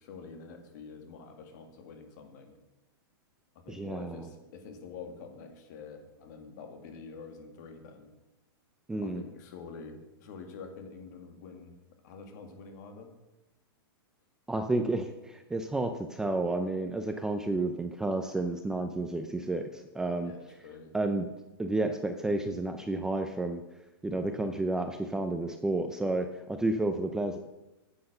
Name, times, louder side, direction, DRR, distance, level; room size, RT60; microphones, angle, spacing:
voice 1, 0.0-2.6 3.5-8.1 9.0-11.8 12.0-13.1 20.2-21.0 27.0-27.3, left 5 dB, 50° left, 5 dB, 2.2 m, -47 dB
voice 2, 3.7-4.3 8.9-9.2 14.5-20.3 20.9-21.3 21.6-23.6 24.0-27.4, right 2 dB, 5° right, 6 dB, 0.5 m, -31 dB
10.0 x 8.0 x 6.5 m, 1.0 s
hypercardioid pair, 155°, 13 cm